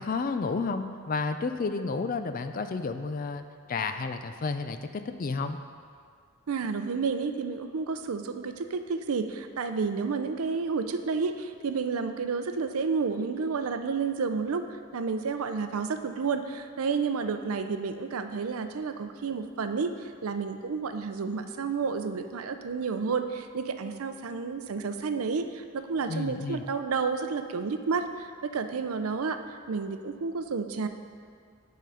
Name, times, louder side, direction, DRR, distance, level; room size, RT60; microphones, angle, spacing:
voice 1, 0.0-5.6 26.1-26.6, left 4 dB, 40° left, 9 dB, 0.4 m, -31 dB
voice 2, 6.5-14.6 14.9-29.4 29.7-30.9, right 5 dB, 85° right, 8 dB, 0.5 m, -30 dB
10.5 x 3.8 x 5.7 m, 2.1 s
head